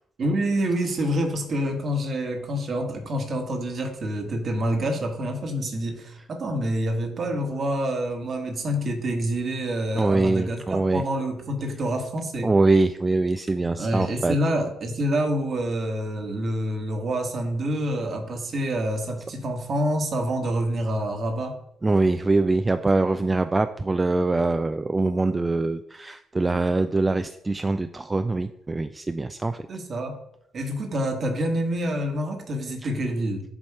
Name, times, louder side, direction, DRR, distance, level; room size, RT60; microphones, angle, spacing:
voice 1, 0.2-12.5 13.8-21.6 29.7-30.2 30.5-33.4, equal, 50° right, 4 dB, 1.3 m, -27 dB
voice 2, 9.9-11.0 12.4-14.4 21.8-29.7 32.8-32.9, right 3 dB, 25° right, 9 dB, 0.4 m, -23 dB
7.5 x 2.7 x 4.6 m, 0.76 s
hypercardioid pair, 45°, 0 cm